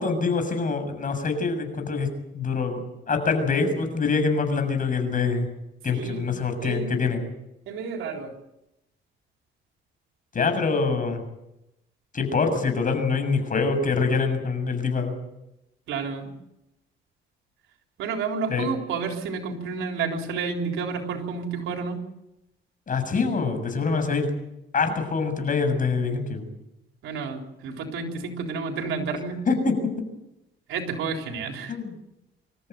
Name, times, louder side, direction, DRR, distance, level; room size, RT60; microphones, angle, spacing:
voice 1, 0.0-2.1 2.3-5.5 5.8-7.2 10.3-11.2 12.1-15.1 18.5-18.7 22.9-24.3 24.7-26.5 29.5-29.7 31.7-31.9, left 4 dB, 40° left, 6 dB, 6.8 m, -25 dB
voice 2, 5.9-6.3 6.6-7.0 7.7-8.3 15.9-16.3 18.0-22.0 27.0-29.4 30.7-31.8, right 5 dB, 85° right, 3 dB, 3.8 m, -30 dB
26.0 x 14.0 x 9.3 m, 0.91 s
cardioid pair, 90°, 20 cm